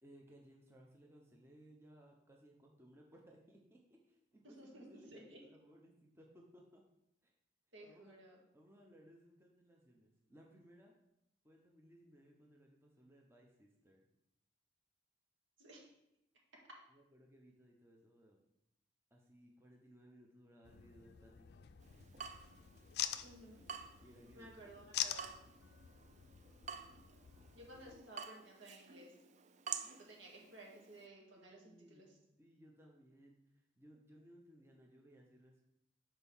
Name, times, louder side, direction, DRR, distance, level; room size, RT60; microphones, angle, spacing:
voice 1, 0.0-6.8 7.2-7.3 7.8-8.2 8.5-10.9 11.4-14.0 16.9-18.4 19.1-21.5 24.0-24.8 31.4-35.6, equal, 15° right, 0 dB, 0.7 m, -63 dB
voice 2, 4.6-5.4 7.7-8.4 15.6-15.9 23.2-23.6 24.4-25.3 27.5-29.1 29.9-32.1, right 1 dB, 70° right, -2 dB, 2.1 m, -56 dB
sound 1, 20.6-28.0, left 11 dB, 55° left, 0.4 m, -46 dB
Water tap faucet / Drip, 21.8-31.1, right 7 dB, 35° right, 0.4 m, -51 dB
6.6 x 4.4 x 5.5 m, 0.84 s
head